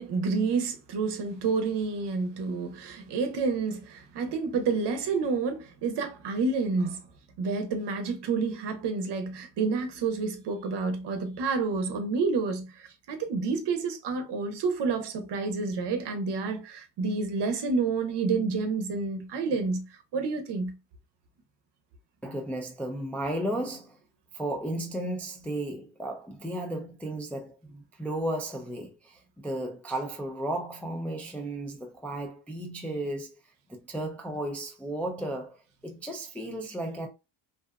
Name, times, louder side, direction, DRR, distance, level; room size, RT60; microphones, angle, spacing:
voice 1, 0.0-7.0 7.4-12.8 13.1-19.9 20.1-20.8, right 4 dB, 60° right, 0.8 m, -29 dB
voice 2, 22.2-24.0 24.3-33.4 33.7-37.1, right 1 dB, 5° left, 0.3 m, -34 dB
2.6 x 2.3 x 2.2 m
cardioid pair, 100°, 47 cm